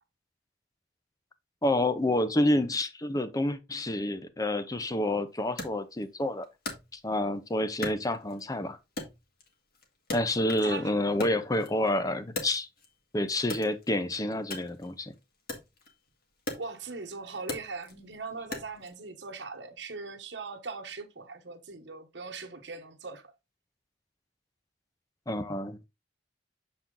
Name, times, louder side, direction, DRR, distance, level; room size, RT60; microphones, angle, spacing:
voice 1, 1.6-6.5 6.9-8.8 10.1-12.7 13.1-15.1 25.3-25.9, left 1 dB, 20° left, 0.7 m, -28 dB
Wood, 5.6-7.4 7.8-8.6 9.0-10.8 11.1-13.0 13.4-19.0, left 2 dB, 55° left, 1.9 m, -40 dB
voice 2, 16.6-23.3, right 4 dB, 70° right, 1.2 m, -40 dB
7.3 x 4.3 x 3.8 m
head